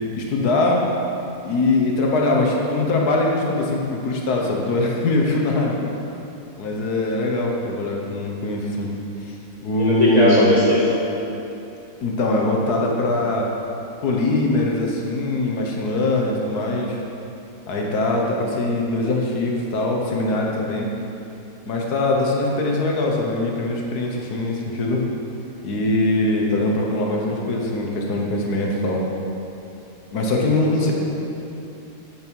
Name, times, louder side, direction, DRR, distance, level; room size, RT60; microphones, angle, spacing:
voice 1, 0.2-0.8 1.4-5.8 6.6-8.9 9.2-9.3 9.6-10.5 12.0-13.5 14.0-17.0 17.7-20.9 21.7-25.1 25.6-29.0 30.1-30.9, left 2 dB, 70° left, -1 dB, 1.6 m, -22 dB
voice 2, 9.8-11.0, left 1 dB, 25° right, -6 dB, 1.3 m, -18 dB
8.6 x 7.8 x 4.6 m, 2.8 s
omnidirectional pair, 1.7 m